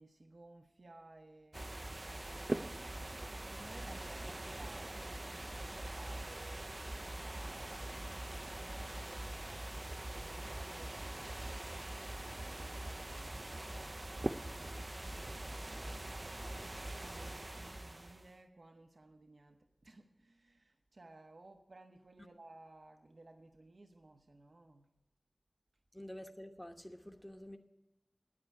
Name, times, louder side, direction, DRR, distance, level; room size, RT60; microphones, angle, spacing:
voice 1, 0.0-3.0 3.3-12.1 12.4-25.0, right 2 dB, 75° right, 0.8 m, -58 dB
sound 1, 1.5-18.3, right 1 dB, 40° right, 0.4 m, -43 dB
voice 2, 3.6-4.0 25.9-27.6, equal, 15° left, 1.0 m, -49 dB
9.7 x 8.7 x 9.8 m
wide cardioid pair, 55°, 0 cm